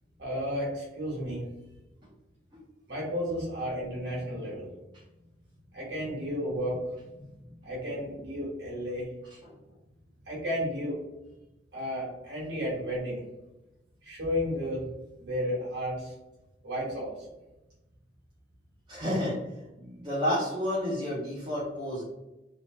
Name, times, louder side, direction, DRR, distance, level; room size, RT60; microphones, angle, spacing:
voice 1, 0.2-1.4 2.9-4.7 5.7-7.2 7.6-9.1 10.3-11.0 11.7-13.2 14.0-14.8 15.2-16.1 16.6-17.4, equal, 75° right, -6 dB, 1.3 m, -33 dB
voice 2, 18.9-19.5 19.8-22.0, equal, 25° right, -7 dB, 0.6 m, -30 dB
2.9 x 2.0 x 3.0 m, 0.98 s
head